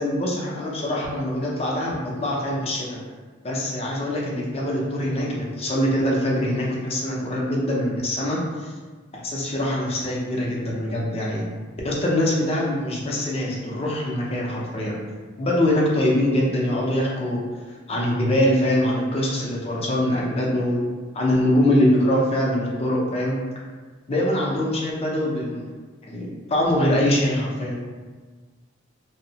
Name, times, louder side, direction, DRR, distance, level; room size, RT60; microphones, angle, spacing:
voice 1, 0.0-3.0 3.4-8.7 9.1-11.4 11.8-15.0 15.4-17.4 17.9-20.8 21.1-23.4 24.1-25.7 26.0-27.8, left 1 dB, 30° left, -3 dB, 0.5 m, -23 dB
2.7 x 2.1 x 2.7 m, 1.4 s
head